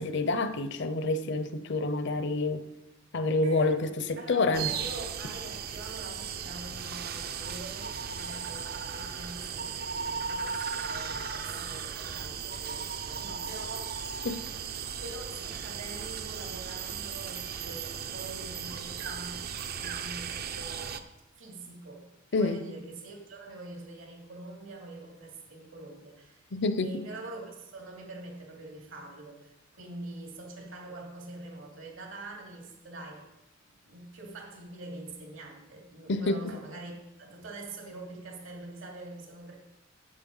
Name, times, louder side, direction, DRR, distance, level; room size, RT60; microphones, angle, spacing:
voice 1, 0.0-2.6 3.1-4.7 14.2-14.4 22.3-22.6 26.5-27.0 36.1-36.5, left 3 dB, 60° left, 0.7 m, -28 dB
voice 2, 3.4-14.1 15.0-19.4 19.8-21.0 21.3-26.4 26.8-33.3 33.8-36.9 37.2-39.5, right 2 dB, 75° right, 2.8 m, -45 dB
sound 1, 4.5-21.0, right 6 dB, 50° right, 0.7 m, -36 dB
8.7 x 8.4 x 5.5 m
head